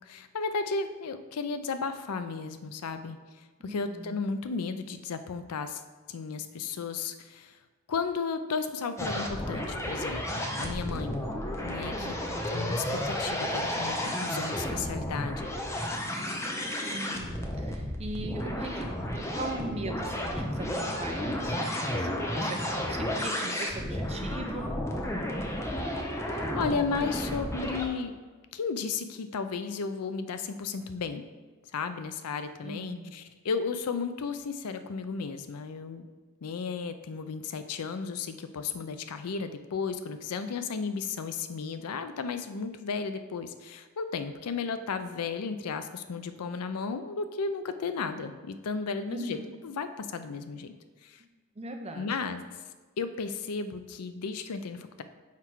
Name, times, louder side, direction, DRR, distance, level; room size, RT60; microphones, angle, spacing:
voice 1, 0.1-3.2 3.6-5.8 6.1-7.5 7.9-11.2 11.6-12.1 12.5-15.5 26.3-28.1 28.5-31.2 31.7-36.1 36.4-49.4 49.6-50.7 51.0-51.2 51.9-52.4 53.0-55.0, left 5 dB, 85° left, 10 dB, 0.5 m, -34 dB
voice 2, 3.6-4.2 12.0-12.5 16.9-18.9 19.1-24.7 32.6-33.1 49.1-49.5 51.5-52.2, right 1 dB, 30° right, 3 dB, 0.6 m, -40 dB
sound 1, 9.0-27.9, left 1 dB, 10° left, 0.6 m, -32 dB
5.9 x 4.5 x 4.5 m, 1.3 s
head